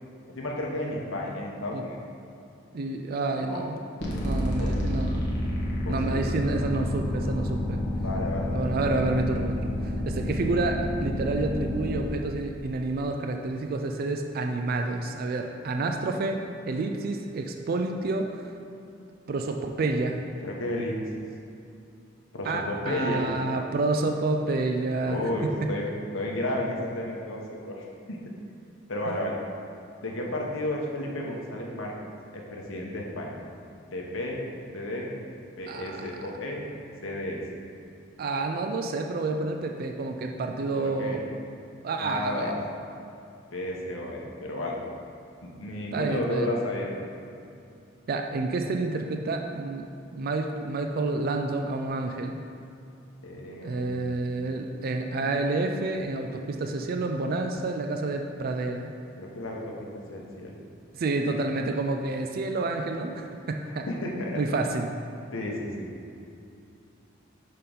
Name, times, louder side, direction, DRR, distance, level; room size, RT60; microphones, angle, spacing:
voice 1, 0.3-2.0 3.5-3.7 4.4-4.7 5.8-6.2 7.9-8.9 20.4-20.9 22.3-23.2 25.0-25.9 26.1-28.2 28.9-29.3 30.0-31.9 32.3-33.3 33.9-34.4 34.7-35.1 35.6-36.6 37.0-37.4 40.7-41.2 42.0-42.7 43.5-44.8 45.4-46.9 53.2-54.1 59.2-59.7 60.1-60.5 61.2-61.3 63.9-64.4 65.3-65.9, left 1 dB, 90° left, -1 dB, 1.0 m, -32 dB
voice 2, 2.7-3.8 4.2-5.2 5.9-7.8 8.5-18.4 19.3-20.2 22.4-25.7 35.7-36.1 38.2-41.3 41.8-42.5 45.9-46.5 48.1-52.4 53.6-58.9 60.9-63.9 64.3-64.9, right 3 dB, 50° right, 4 dB, 0.4 m, -29 dB
sound 1, 4.0-12.0, left 1 dB, 60° left, 1.2 m, -29 dB
6.7 x 3.7 x 5.3 m, 2.6 s
head